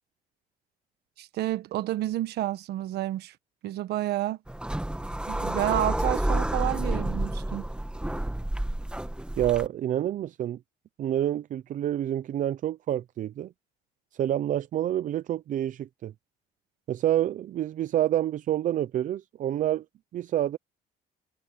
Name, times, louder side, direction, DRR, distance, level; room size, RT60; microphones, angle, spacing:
voice 1, 1.2-3.3 3.6-4.4 5.3-7.6, right 14 dB, 75° right, 1.3 m, -30 dB
sound 1, 4.5-9.7, right 1 dB, 5° right, 1.3 m, -29 dB
voice 2, 9.4-10.6 11.0-13.5 14.1-16.1 16.9-19.8 20.1-20.6, right 12 dB, 50° right, 0.5 m, -28 dB
cardioid pair, 110°, 17 cm